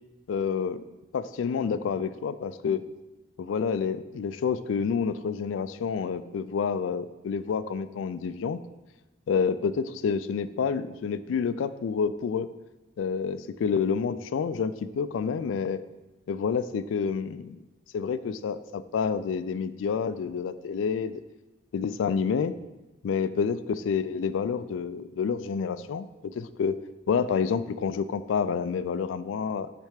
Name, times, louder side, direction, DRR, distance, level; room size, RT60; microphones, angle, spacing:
voice 1, 0.3-0.8 1.1-2.9 3.4-8.6 9.3-12.5 13.0-15.8 16.3-17.6 17.9-21.2 21.7-22.6 23.0-26.8 27.1-29.7, left 6 dB, 85° left, 14 dB, 0.3 m, -28 dB
6.3 x 3.3 x 4.9 m, 1.1 s
head